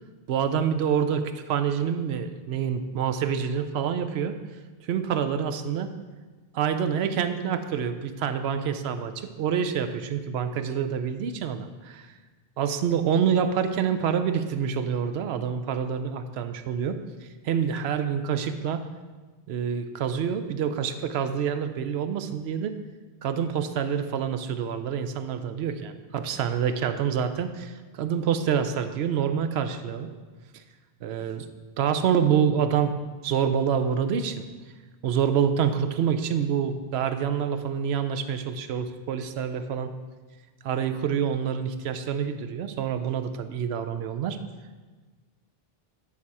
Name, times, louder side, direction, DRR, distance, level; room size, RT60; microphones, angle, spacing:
voice 1, 0.3-4.4 4.9-5.9 6.5-12.1 12.6-18.8 19.5-22.7 23.2-30.1 30.5-30.6 31.0-31.5 31.8-32.9 33.2-34.5 35.0-39.9 40.6-44.4, right 7 dB, 90° right, 9 dB, 0.8 m, -27 dB
9.6 x 4.3 x 4.7 m, 1.3 s
omnidirectional pair, 1.0 m